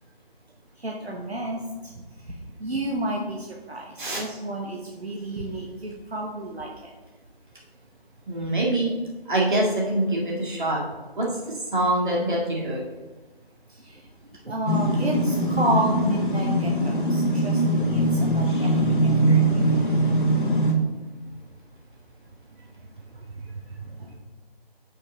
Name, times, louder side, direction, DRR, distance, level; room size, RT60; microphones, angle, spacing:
voice 1, 0.8-1.6 2.6-6.9 13.9-14.0 14.4-19.4 19.8-19.9 23.8-24.2, right 1 dB, 80° right, -1 dB, 1.2 m, -31 dB
voice 2, 8.3-8.9 9.3-10.8 11.2-11.3 11.7-12.8, right 1 dB, 50° right, -3 dB, 2.2 m, -24 dB
sound 1, 14.7-20.7, right 1 dB, 55° left, 1.4 m, -22 dB
6.5 x 6.4 x 3.7 m, 1.2 s
figure-of-eight pair, 160°, 31 cm